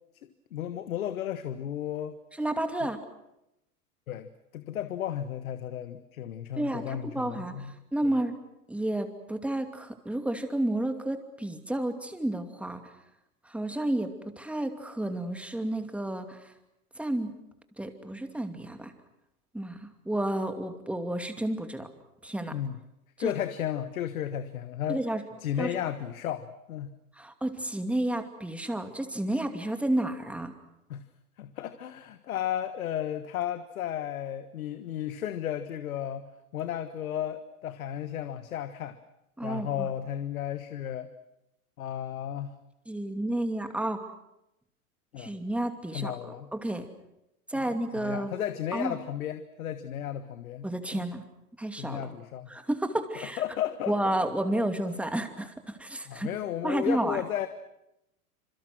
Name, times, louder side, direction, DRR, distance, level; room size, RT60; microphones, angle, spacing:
voice 1, 0.2-2.1 4.1-7.8 22.5-22.8 23.2-25.0 25.4-26.9 30.9-31.0 31.4-36.3 36.5-39.0 39.4-41.1 41.8-42.5 45.1-45.3 45.9-46.5 47.5-47.7 47.9-51.0 51.8-52.5 53.2-53.9 56.1-57.5, left 10 dB, 65° left, 11 dB, 1.5 m, -34 dB
voice 2, 2.4-3.0 6.6-7.7 7.9-8.3 8.7-12.8 13.5-16.5 17.0-17.3 17.8-18.9 19.5-21.9 22.2-22.5 23.2-23.3 24.9-25.2 25.6-25.9 27.2-30.5 39.4-39.9 42.9-44.0 45.2-46.9 47.5-48.3 48.7-49.0 50.6-51.2 51.6-52.1 52.5-53.4 53.9-56.3 56.6-57.2, right 1 dB, 5° right, 7 dB, 2.6 m, -31 dB
28.5 x 26.5 x 6.2 m, 0.87 s
hypercardioid pair, 105°, 45 cm